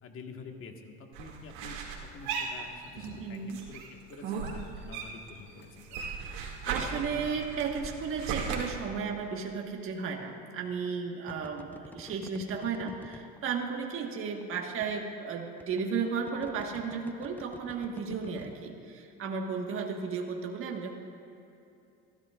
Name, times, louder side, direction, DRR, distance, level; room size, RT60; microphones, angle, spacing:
voice 1, 0.0-1.8 2.1-3.4 3.7-6.2, left 4 dB, 45° left, 3 dB, 1.6 m, -48 dB
sound 1, 1.1-3.2 3.5-5.3 5.6-8.6, right 6 dB, 70° right, 2.2 m, -37 dB
Motor vehicle (road), 1.9-3.5 3.8-5.9 6.5-7.0, left 4 dB, 80° left, 3.4 m, -55 dB
voice 2, 3.2-3.6 6.3-6.4 6.7-20.9, right 5 dB, 45° right, 1 dB, 1.5 m, -34 dB
sound 2, 9.8-10.0 11.3-13.4 14.4-14.5 14.8-14.9 15.6-15.8 16.3-18.5, left 1 dB, 5° left, 0.6 m, -49 dB
22.5 x 13.5 x 2.4 m, 2.7 s
supercardioid pair, 105°, 30 cm